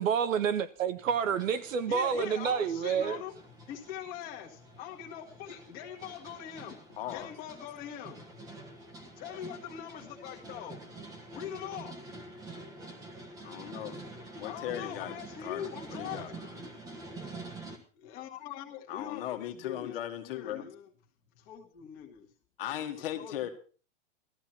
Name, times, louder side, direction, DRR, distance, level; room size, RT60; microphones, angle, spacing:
voice 1, 0.0-3.2, right 7 dB, 80° right, 1.5 m, -29 dB
sound 1, 1.1-17.8, right 2 dB, 10° right, 1.3 m, -47 dB
voice 2, 1.9-3.4 3.7-6.8 7.1-8.2 9.2-10.8 11.3-12.0 14.4-16.4 18.0-20.0 20.2-20.9 21.5-22.3 23.2-23.5, left 10 dB, 25° left, 1.8 m, -42 dB
voice 3, 7.0-7.3 13.4-14.0 14.4-15.2 15.4-16.6 18.9-20.7 22.6-23.5, left 12 dB, 45° left, 1.8 m, -38 dB
15.5 x 14.0 x 4.5 m
supercardioid pair, 175°, 38 cm